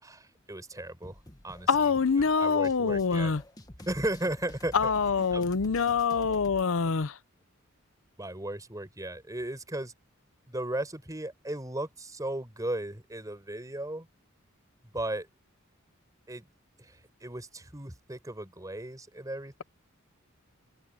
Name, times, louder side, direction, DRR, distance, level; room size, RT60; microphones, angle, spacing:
voice 1, 0.0-1.2 1.4-1.9 2.2-3.3 3.9-4.9 5.3-5.5 8.2-9.9 10.5-14.1 14.9-15.3 16.3-16.5 16.8-19.6, right 1 dB, 15° right, 4.4 m, -36 dB
sound 1, 1.0-6.6, left 1 dB, 20° left, 1.4 m, -48 dB
voice 2, 1.7-3.4 4.7-7.2, left 5 dB, 70° left, 0.6 m, -25 dB
head